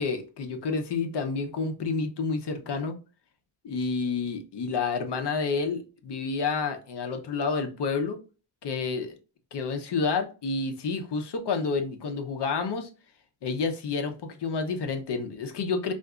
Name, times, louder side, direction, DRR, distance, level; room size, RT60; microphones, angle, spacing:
voice 1, 0.0-3.0 3.6-8.2 8.6-9.2 9.5-12.9 13.4-15.9, left 4 dB, 55° left, 0.7 m, -29 dB
3.8 x 2.6 x 2.3 m
wide cardioid pair, 130°, 48 cm